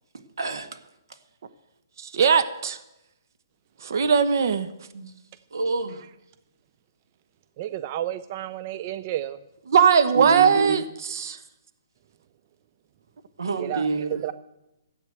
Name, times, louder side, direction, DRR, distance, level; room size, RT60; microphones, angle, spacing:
voice 1, 0.1-1.2 4.9-5.1 5.5-6.1 10.1-10.8 13.4-14.2, right 3 dB, 80° right, 8 dB, 1.9 m, -28 dB
voice 2, 2.0-2.8 3.8-4.7 9.7-10.8 11.2-11.4, right 6 dB, 55° right, 10 dB, 1.1 m, -19 dB
voice 3, 7.6-9.4 13.7-13.8 14.2-14.3, right 13 dB, 30° right, 13 dB, 0.4 m, -31 dB
14.0 x 8.5 x 7.9 m, 0.91 s
hypercardioid pair, 160°, 2 cm